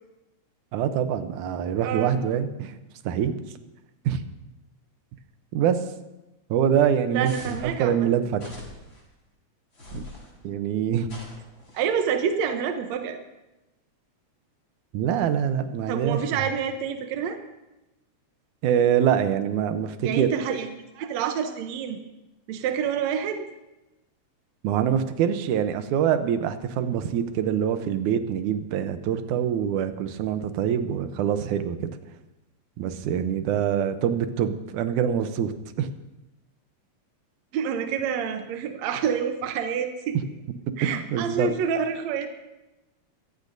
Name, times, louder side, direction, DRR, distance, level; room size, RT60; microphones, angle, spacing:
voice 1, 0.7-2.7 3.1-3.4 4.1-4.2 5.5-5.8 6.5-8.4 9.9-10.0 10.4-11.2 14.9-16.4 18.6-20.3 24.6-31.9 32.8-35.5 35.8-35.9 40.8-41.5, right 9 dB, 85° right, 9 dB, 2.3 m, -25 dB
voice 2, 1.8-2.2 7.1-8.0 11.7-13.2 15.9-17.4 20.0-22.0 22.5-23.5 37.5-40.2 40.8-42.3, right 7 dB, 70° right, 6 dB, 2.0 m, -28 dB
sound 1, 7.2-7.7 8.3-9.0 9.7-10.3 11.0-11.9, left 2 dB, 30° left, 4.5 m, -42 dB
23.0 x 15.0 x 2.7 m, 0.99 s
omnidirectional pair, 3.4 m